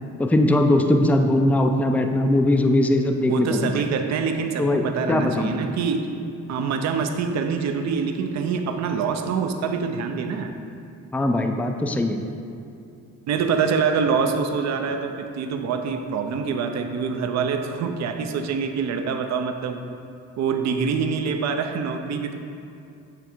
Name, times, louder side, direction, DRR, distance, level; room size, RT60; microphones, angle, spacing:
voice 1, 0.2-3.8 4.6-5.6 11.1-12.3, left 1 dB, 5° left, 5 dB, 0.4 m, -20 dB
voice 2, 3.3-6.1 6.5-10.5 13.3-19.8 20.4-22.3, right 5 dB, 65° right, 6 dB, 0.6 m, -25 dB
7.7 x 3.4 x 4.5 m, 2.5 s
cardioid pair, 90°, 30 cm